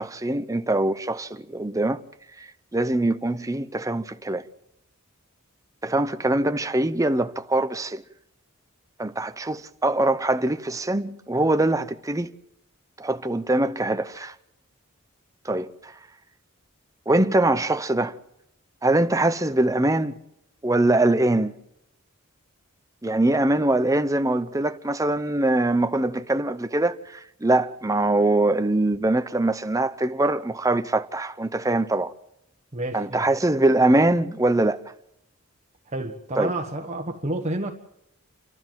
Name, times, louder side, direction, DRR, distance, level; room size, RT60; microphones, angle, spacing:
voice 1, 0.0-2.0 2.4-4.5 5.8-8.0 9.0-12.3 13.0-14.3 15.4-15.9 17.1-18.2 18.8-20.2 20.6-21.5 23.0-32.1 32.9-34.8 36.4-36.5, right 2 dB, 15° right, 0.8 m, -23 dB
voice 2, 32.7-33.2 35.9-37.7, right 1 dB, 30° right, 1.3 m, -30 dB
29.5 x 13.0 x 7.6 m
head